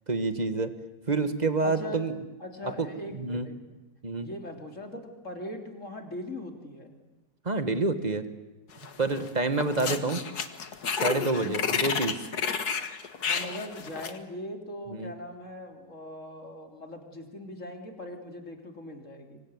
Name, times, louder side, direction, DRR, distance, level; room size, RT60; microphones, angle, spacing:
voice 1, 0.1-0.7 1.1-2.1 3.1-3.5 4.0-4.3 7.4-8.2 9.0-10.2 11.0-12.1 14.9-15.1, right 3 dB, 25° right, 10 dB, 1.8 m, -27 dB
voice 2, 1.6-2.0 2.4-3.6 4.2-6.9 9.9-10.0 11.3-12.0 13.2-19.4, left 1 dB, 50° left, 4 dB, 3.8 m, -40 dB
sound 1, 8.8-9.3 9.6-14.2, left 6 dB, 70° left, 2.1 m, -31 dB
25.5 x 24.0 x 9.6 m, 1.0 s
omnidirectional pair, 1.7 m